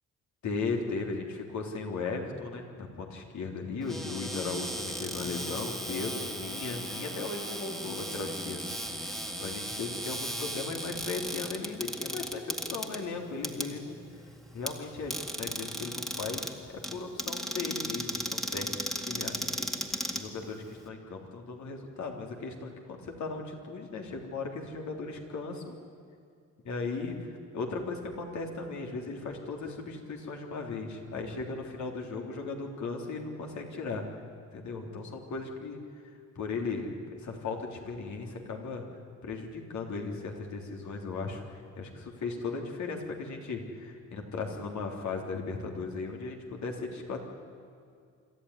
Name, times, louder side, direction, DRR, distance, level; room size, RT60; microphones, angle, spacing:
voice 1, 0.4-14.0 14.5-18.7 19.0-25.7 26.6-34.0 34.5-35.8 36.4-38.8 39.2-47.2, left 4 dB, 70° left, 2 dB, 3.5 m, -37 dB
Cupboard open or close, 3.8-20.9, equal, ahead, 2.1 m, -36 dB
26.0 x 13.5 x 10.0 m, 2.3 s
cardioid pair, 90°, 30 cm